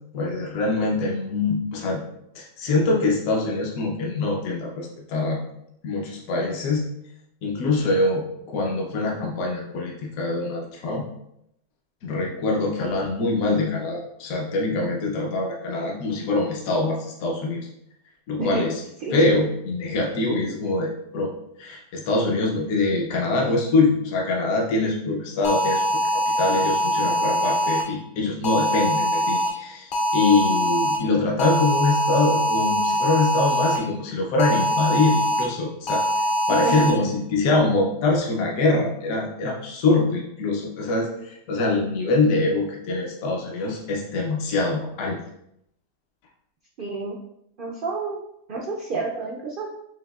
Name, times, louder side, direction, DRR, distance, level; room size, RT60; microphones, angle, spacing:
voice 1, 0.1-2.0 2.3-5.4 5.8-6.9 7.4-11.0 12.0-17.6 18.3-18.8 19.1-21.3 21.6-25.8 26.4-36.0 36.5-45.2, left 3 dB, 70° left, -2 dB, 1.1 m, -24 dB
sound 1, 25.4-27.8 28.4-29.5 29.9-31.0 31.4-33.8 34.4-35.4 35.9-36.9, equal, 55° left, 0.6 m, -23 dB
voice 2, 46.8-47.2 47.6-48.2 48.5-49.7, right 3 dB, 80° right, -1 dB, 0.4 m, -29 dB
5.9 x 2.7 x 2.3 m, 0.78 s
omnidirectional pair, 1.5 m